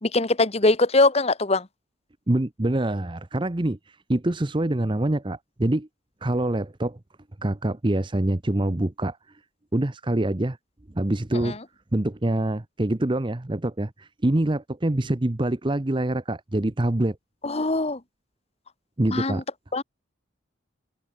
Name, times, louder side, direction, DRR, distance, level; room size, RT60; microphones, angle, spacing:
voice 1, 0.0-1.7 11.4-11.6 17.4-18.0 19.1-19.4 19.7-19.8, left 2 dB, 30° left, 1.2 m, -22 dB
voice 2, 2.3-5.9 6.2-7.0 7.4-9.2 9.7-10.6 10.9-11.6 11.9-17.2 19.0-19.4, right 1 dB, 25° right, 0.8 m, -25 dB
open air
head